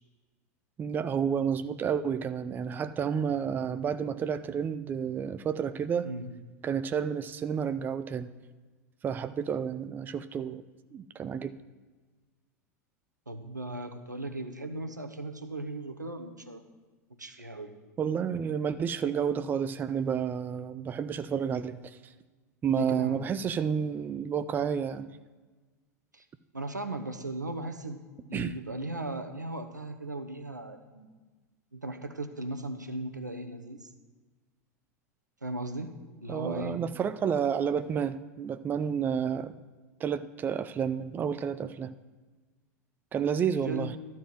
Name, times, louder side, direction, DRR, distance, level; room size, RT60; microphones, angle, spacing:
voice 1, 0.8-6.1 6.6-8.3 9.0-10.6 10.9-11.5 18.0-22.1 22.6-25.1 28.3-28.5 36.3-39.5 40.0-41.9 43.1-43.9, right 7 dB, 20° right, 13 dB, 0.4 m, -30 dB
voice 2, 13.3-16.6 17.2-17.7 22.7-23.2 26.1-26.2 26.5-28.0 28.3-31.1 31.7-33.9 35.4-35.9 36.2-36.8 43.6-43.9, right 2 dB, 85° right, 8 dB, 0.9 m, -37 dB
12.5 x 4.6 x 7.4 m, 1.3 s
figure-of-eight pair, 85°, 9 cm